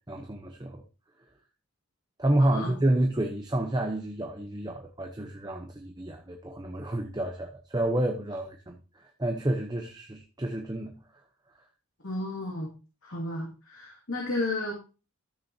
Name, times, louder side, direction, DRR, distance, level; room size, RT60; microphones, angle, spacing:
voice 1, 0.1-0.8 2.2-10.9, right 1 dB, 20° right, 0.8 m, -29 dB
voice 2, 2.4-2.7 12.0-12.7 13.0-14.7, left 2 dB, 65° left, 2.5 m, -33 dB
13.0 x 6.8 x 2.8 m
head